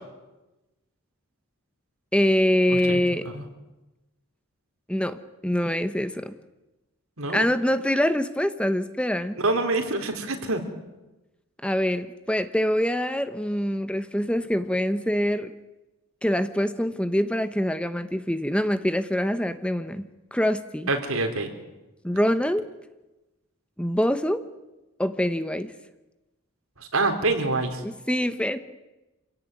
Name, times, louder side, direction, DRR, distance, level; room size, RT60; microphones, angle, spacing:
voice 1, 2.1-3.2 4.9-6.3 7.3-9.4 11.6-15.5 16.2-20.9 22.0-22.6 23.8-24.4 25.0-25.7 27.8-28.6, equal, 5° left, 11 dB, 0.9 m, -25 dB
voice 2, 2.7-3.4 7.2-7.5 9.4-10.6 20.9-21.5 26.8-27.8, right 2 dB, 80° right, 5 dB, 3.9 m, -26 dB
27.5 x 17.0 x 9.7 m, 1.1 s
head